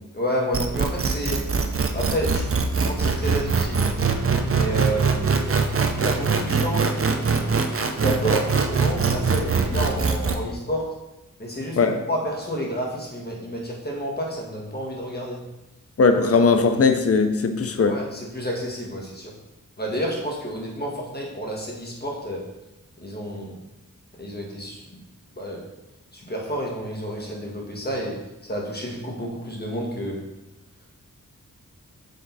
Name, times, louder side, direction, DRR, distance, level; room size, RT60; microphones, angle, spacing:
voice 1, 0.1-1.4 1.9-2.5 2.8-4.0 4.5-5.5 6.0-7.4 8.0-10.9 11.4-15.4 17.9-19.3 19.8-22.4 23.0-23.6 24.2-25.0 25.4-25.6 26.1-28.2 28.5-30.2, equal, 30° left, -2 dB, 1.7 m, -30 dB
sound 1, 0.5-10.4, right 5 dB, 40° right, 0.6 m, -22 dB
voice 2, 16.0-18.0, left 4 dB, 45° left, 7 dB, 0.6 m, -19 dB
6.7 x 3.7 x 4.1 m, 0.99 s
wide cardioid pair, 70°, 34 cm